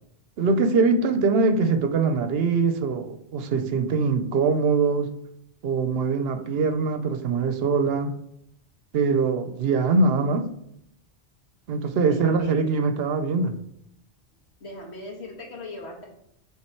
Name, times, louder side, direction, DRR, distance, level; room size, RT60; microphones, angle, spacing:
voice 1, 0.4-5.1 5.6-8.1 8.9-10.5 11.7-13.6, right 4 dB, 70° right, 9 dB, 0.8 m, -23 dB
voice 2, 11.9-12.7 14.6-16.1, left 1 dB, 75° left, -1 dB, 1.7 m, -39 dB
7.6 x 3.5 x 4.4 m, 0.75 s
omnidirectional pair, 1.1 m